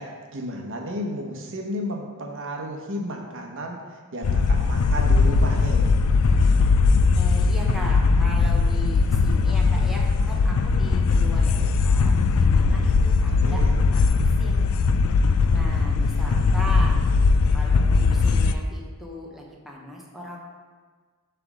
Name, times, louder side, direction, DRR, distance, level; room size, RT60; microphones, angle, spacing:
voice 1, 0.0-6.0 13.3-13.8, equal, 60° right, 1 dB, 1.0 m, -33 dB
sound 1, 4.2-18.5, left 4 dB, 80° left, 0.4 m, -19 dB
voice 2, 7.1-14.8 15.5-17.0 17.5-20.4, equal, ahead, -3 dB, 0.8 m, -38 dB
7.6 x 3.4 x 6.1 m, 1.5 s
head